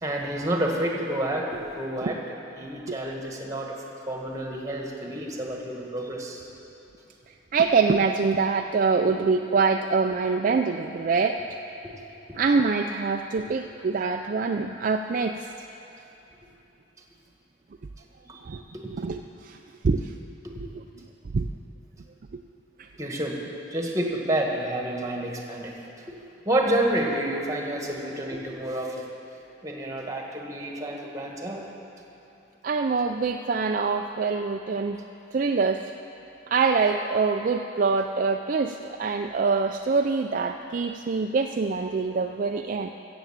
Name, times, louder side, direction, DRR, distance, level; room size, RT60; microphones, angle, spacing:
voice 1, 0.0-6.5 18.2-18.9 20.5-20.6 23.0-25.7 26.4-29.0 29.6-31.6, right 1 dB, 20° right, 0 dB, 1.6 m, -29 dB
voice 2, 7.3-11.4 12.3-15.5 18.4-18.6 18.9-19.6 19.8-20.1 21.3-21.5 22.3-22.4 22.8-22.9 32.6-35.0 35.3-35.8 36.5-42.9, right 4 dB, 45° right, 4 dB, 0.4 m, -25 dB
14.5 x 7.9 x 7.4 m, 2.8 s
head